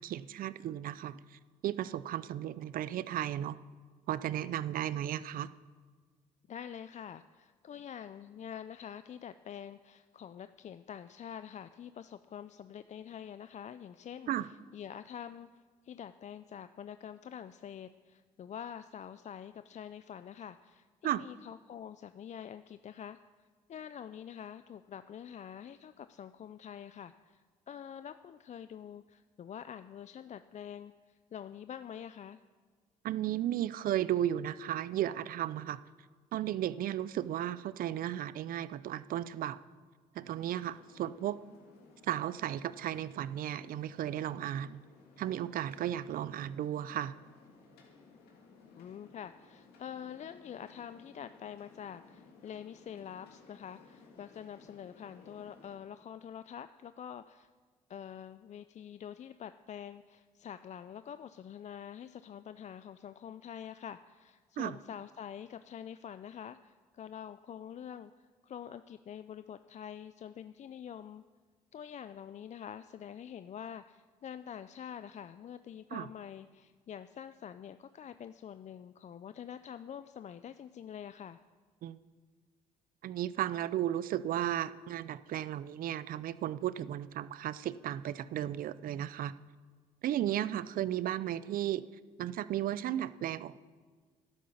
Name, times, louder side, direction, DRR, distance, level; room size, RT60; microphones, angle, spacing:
voice 1, 0.0-3.6 4.1-5.5 14.3-14.5 21.0-21.2 33.0-35.8 36.3-39.6 40.1-41.4 42.0-44.8 45.2-47.1 64.6-64.7 75.9-76.1 81.8-82.0 83.0-89.4 90.0-91.8 92.2-93.6, right 12 dB, 65° right, 16 dB, 0.6 m, -34 dB
voice 2, 6.5-15.5 15.8-23.2 23.7-32.4 48.8-57.5 57.9-68.1 68.4-71.2 71.7-81.4, left 9 dB, 45° left, 12 dB, 0.5 m, -46 dB
sound 1, 40.4-55.8, left 4 dB, 80° left, 2.5 m, -59 dB
11.5 x 10.5 x 7.0 m, 1.5 s
supercardioid pair, 60°, 16 cm